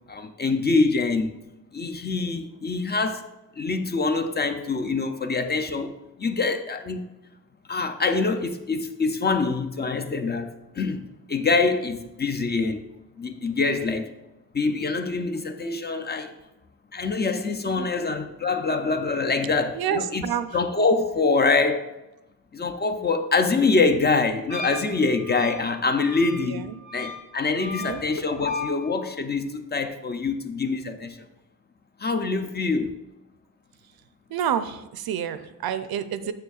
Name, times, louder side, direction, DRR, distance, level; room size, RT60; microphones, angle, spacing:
voice 1, 0.1-1.4 1.7-3.2 3.6-7.1 7.7-12.8 13.2-14.1 14.5-16.3 16.9-20.3 20.5-21.9 22.5-31.2 32.0-33.0, left 4 dB, 30° left, 0.4 m, -25 dB
voice 2, 17.8-18.1 19.7-20.5 26.4-26.8 27.6-28.0 34.3-36.3, right 9 dB, 85° right, 0.5 m, -29 dB
Wind instrument woodwind instrument, 24.5-28.8, left 2 dB, 55° left, 2.0 m, -38 dB
6.8 x 6.7 x 2.4 m
wide cardioid pair, 125°, 36 cm